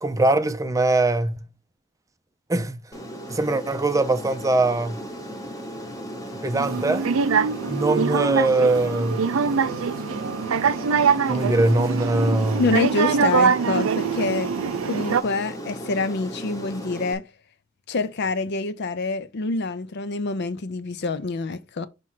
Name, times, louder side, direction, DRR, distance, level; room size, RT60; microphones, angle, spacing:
voice 1, 0.0-1.3 2.5-2.8 3.3-5.0 6.4-7.1 7.7-9.2 11.3-12.6, right 2 dB, 15° right, 0.5 m, -22 dB
Aircraft, 2.9-17.1, equal, 15° left, 1.0 m, -36 dB
sound 1, 6.5-15.2, right 6 dB, 85° right, 0.5 m, -23 dB
voice 2, 12.6-14.5 14.9-17.3 17.9-21.9, left 3 dB, 55° left, 0.6 m, -26 dB
5.9 x 3.1 x 5.6 m
head